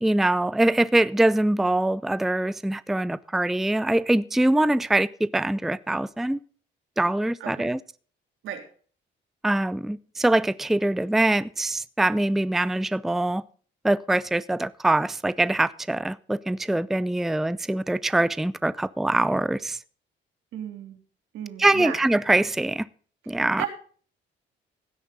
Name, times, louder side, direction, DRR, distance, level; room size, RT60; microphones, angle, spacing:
voice 1, 0.0-6.4 7.0-7.8 9.4-13.4 13.8-19.8 21.6-22.9 23.3-23.7, right 1 dB, ahead, 0.5 m, -23 dB
voice 2, 7.4-7.7 8.4-8.7 20.5-21.0 21.3-22.0 23.3-23.7, right 10 dB, 85° right, 3.3 m, -34 dB
16.0 x 9.1 x 3.9 m
cardioid pair, 90°, 20 cm